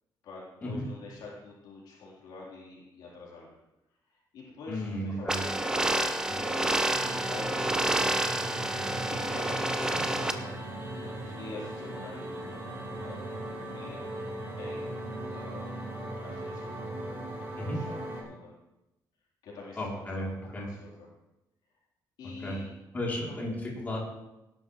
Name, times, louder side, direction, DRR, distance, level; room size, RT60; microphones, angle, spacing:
voice 1, 0.2-3.6 4.1-6.9 7.3-8.0 9.1-9.8 10.1-15.8 16.2-16.7 17.4-18.5 19.4-21.1 22.2-22.7 23.2-23.4, left 3 dB, 75° left, -5 dB, 4.0 m, -46 dB
voice 2, 4.7-5.4 6.3-6.4 17.6-17.8 19.8-20.7 22.4-22.6 22.9-24.0, left 1 dB, 25° left, -4 dB, 3.4 m, -34 dB
sound 1, 5.3-10.3, right 1 dB, 10° right, 0.7 m, -29 dB
sound 2, 6.9-18.2, right 1 dB, 30° right, 4.4 m, -38 dB
18.5 x 11.0 x 3.3 m, 0.95 s
cardioid pair, 170°, 7 cm